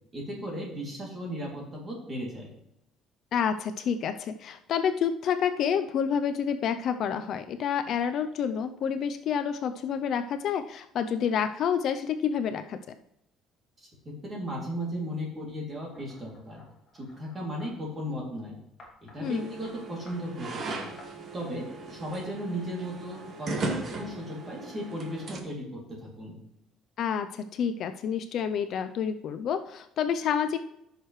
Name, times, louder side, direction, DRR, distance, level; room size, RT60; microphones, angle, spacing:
voice 1, 0.1-2.5 13.8-16.6 16.9-18.6 19.0-20.9 21.3-26.4, equal, 20° right, -2 dB, 2.7 m, -36 dB
voice 2, 3.3-12.8 19.2-19.5 27.0-30.6, left 7 dB, 45° left, 9 dB, 0.5 m, -29 dB
sound 1, 15.9-17.7 18.8-19.2 19.6-19.8 20.1-20.6 21.0-21.1, left 2 dB, 20° left, 2.4 m, -53 dB
sound 2, 19.2-25.4, right 3 dB, 35° right, 1.4 m, -37 dB
14.5 x 6.6 x 3.2 m, 0.81 s
cardioid pair, 165°, 0 cm